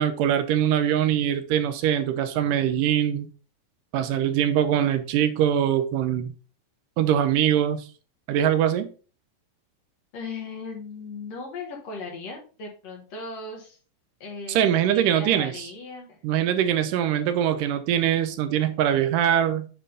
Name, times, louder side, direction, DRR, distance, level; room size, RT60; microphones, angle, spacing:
voice 1, 0.0-3.3 3.9-6.3 7.0-7.8 8.3-8.9 14.5-15.7 16.2-19.7, right 10 dB, 90° right, 10 dB, 2.3 m, -23 dB
voice 2, 10.1-13.8 14.2-16.2, left 3 dB, 60° left, 1 dB, 2.3 m, -37 dB
8.8 x 3.6 x 3.8 m, 0.36 s
omnidirectional pair, 3.8 m